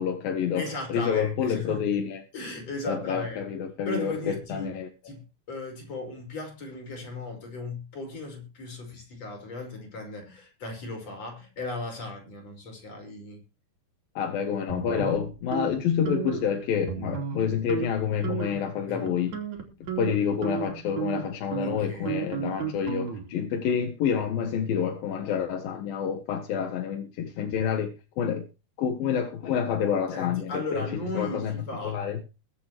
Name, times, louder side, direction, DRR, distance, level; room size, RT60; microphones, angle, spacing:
voice 1, 0.0-2.2 2.9-4.9 14.1-19.4 20.0-28.5 28.8-30.9 31.1-31.6 31.8-32.2, left 8 dB, 75° left, 3.2 m, -28 dB
voice 2, 0.5-1.8 2.3-3.5 3.9-4.7 5.0-5.2 5.5-13.4 18.8-19.1 21.6-22.1 30.1-32.0, left 2 dB, 45° left, 6.2 m, -36 dB
sound 1, 14.7-15.7 16.1-16.5 16.9-17.4 17.7-17.9 18.2-18.7 19.1-23.4, right 7 dB, 55° right, 4.1 m, -33 dB
22.0 x 8.7 x 3.0 m
omnidirectional pair, 4.3 m